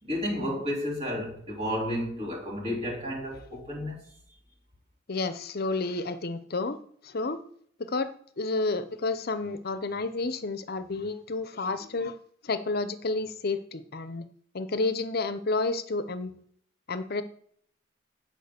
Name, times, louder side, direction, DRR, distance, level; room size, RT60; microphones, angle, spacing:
voice 1, 0.0-4.0, equal, 30° right, 2.4 m, -32 dB
voice 2, 5.1-6.8 7.0-7.4 7.9-12.2 12.4-14.2 14.5-16.3 16.9-17.2, left 3 dB, 50° left, 0.7 m, -30 dB
9.2 x 5.0 x 6.7 m
head